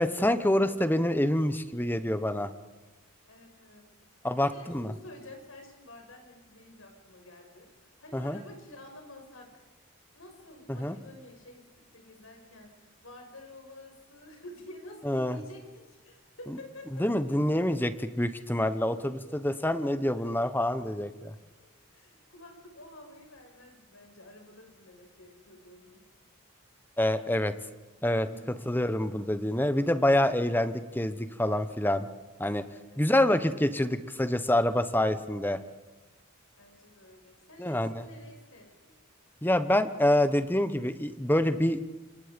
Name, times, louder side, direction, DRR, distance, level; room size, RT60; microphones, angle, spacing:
voice 1, 0.0-2.5 4.2-4.5 4.7-4.9 8.1-8.4 10.7-11.0 15.0-15.4 17.0-21.3 27.0-27.5 28.0-28.3 28.7-32.1 32.4-32.6 33.0-35.6 37.6-38.0 39.4-41.8, left 1 dB, 10° left, 11 dB, 1.0 m, -26 dB
voice 2, 3.2-3.9 4.4-9.6 10.1-17.1 20.1-20.3 21.6-26.1 28.2-28.5 32.9-33.4 36.6-39.0, left 1 dB, 80° left, 3 dB, 6.2 m, -50 dB
28.0 x 25.5 x 5.2 m, 1.2 s
head